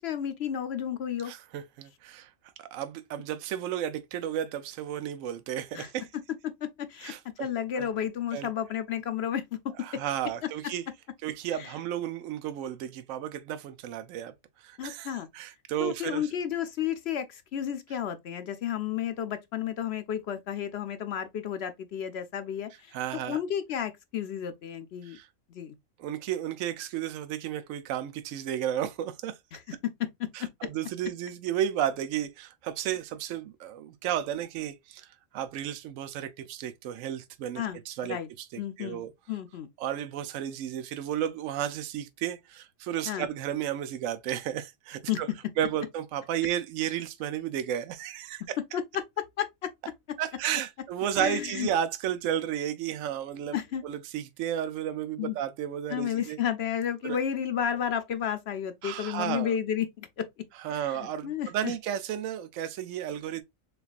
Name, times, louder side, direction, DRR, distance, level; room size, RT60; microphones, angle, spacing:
voice 1, 0.0-1.3 5.7-5.9 6.4-7.1 7.4-10.0 11.5-11.7 14.8-15.3 15.8-25.2 25.5-25.7 29.5-30.5 37.6-38.3 38.6-39.7 43.1-43.3 45.1-45.2 48.7-49.7 51.2-51.7 53.5-53.8 55.2-55.4 55.9-60.3 60.7-61.7, left 9 dB, 65° left, 0.7 m, -32 dB
voice 2, 1.2-2.3 2.6-6.1 7.0-7.5 7.8-7.9 8.3-8.5 9.8-10.8 11.2-14.3 14.6-15.1 15.3-16.3 22.9-23.4 25.0-25.3 26.0-29.4 30.3-35.1 35.3-39.1 39.8-45.3 45.6-48.6 50.2-53.6 53.8-56.4 57.0-57.2 58.8-59.5 60.6-63.4, right 10 dB, 75° right, 0.9 m, -33 dB
6.6 x 2.4 x 2.4 m
omnidirectional pair, 1.4 m